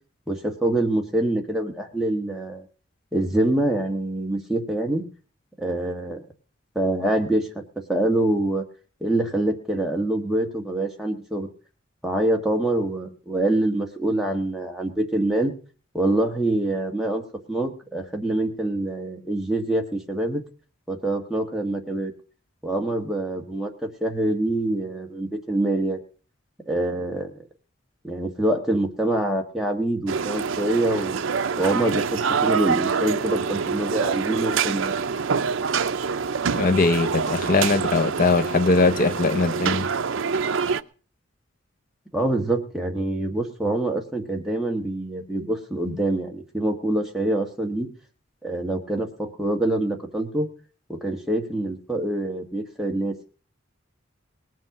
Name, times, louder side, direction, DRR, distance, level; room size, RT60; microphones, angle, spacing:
voice 1, 0.3-2.6 3.1-5.0 5.6-6.2 6.7-7.6 7.9-8.6 9.0-11.5 12.0-15.5 15.9-17.2 17.5-20.4 20.9-22.1 22.6-23.7 24.0-26.0 26.7-27.3 28.0-31.2 31.6-35.0 42.1-47.9 48.4-50.5 50.9-53.3, right 1 dB, ahead, 1.6 m, -25 dB
sound 1, 30.1-40.8, right 5 dB, 75° right, 0.5 m, -26 dB
voice 2, 36.5-39.9, left 3 dB, 40° left, 0.6 m, -21 dB
19.5 x 7.7 x 6.0 m
head